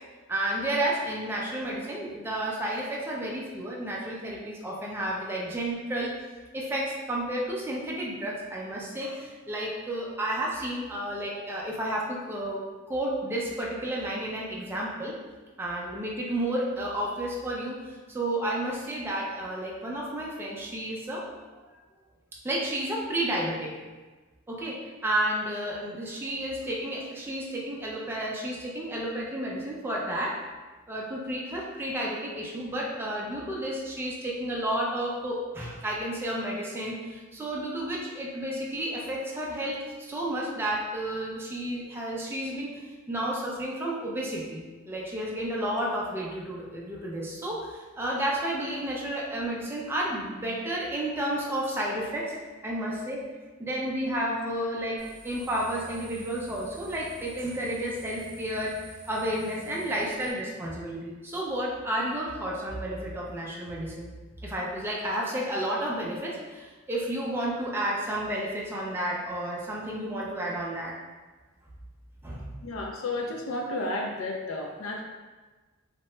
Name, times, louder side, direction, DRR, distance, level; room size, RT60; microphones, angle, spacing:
voice 1, 0.3-6.1 6.5-15.1 15.6-21.3 22.4-23.7 24.5-30.4 30.9-42.8 43.1-53.2 53.6-58.8 59.1-64.1 64.4-71.0 72.2-72.5, right 1 dB, 10° right, -4 dB, 0.3 m, -31 dB
sound 1, 55.0-60.3, right 3 dB, 50° right, 0.7 m, -48 dB
voice 2, 72.6-75.0, left 2 dB, 75° left, 1 dB, 0.4 m, -32 dB
2.7 x 2.1 x 3.1 m, 1.3 s
head